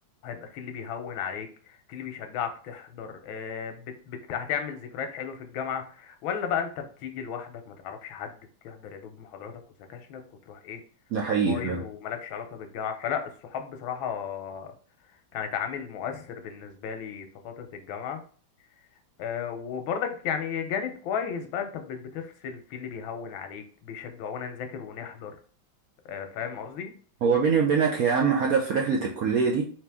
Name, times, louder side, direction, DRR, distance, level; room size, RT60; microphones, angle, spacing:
voice 1, 0.2-8.4 8.6-9.5 9.9-10.2 10.5-10.8 11.4-14.7 15.3-18.2 19.2-25.4 26.0-26.9, left 7 dB, 90° left, 6 dB, 1.5 m, -34 dB
voice 2, 11.1-11.8 27.2-29.7, right 5 dB, 70° right, -1 dB, 0.8 m, -23 dB
4.1 x 3.1 x 3.4 m, 0.43 s
omnidirectional pair, 2.1 m